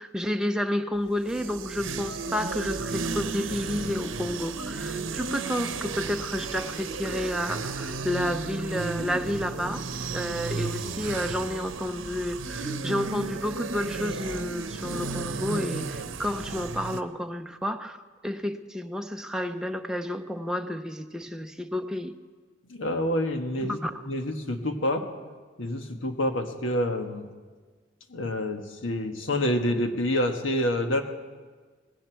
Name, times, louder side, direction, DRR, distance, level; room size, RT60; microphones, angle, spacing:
voice 1, 0.0-9.8 10.1-18.0 18.2-22.1 23.6-23.9, left 1 dB, 5° right, 5 dB, 0.6 m, -31 dB
sound 1, 1.1-17.0, right 4 dB, 90° right, 0.8 m, -33 dB
voice 2, 22.7-23.8 24.1-25.0 25.6-27.3 28.1-31.0, left 1 dB, 85° left, 5 dB, 1.4 m, -27 dB
19.0 x 16.5 x 4.6 m, 1.5 s
head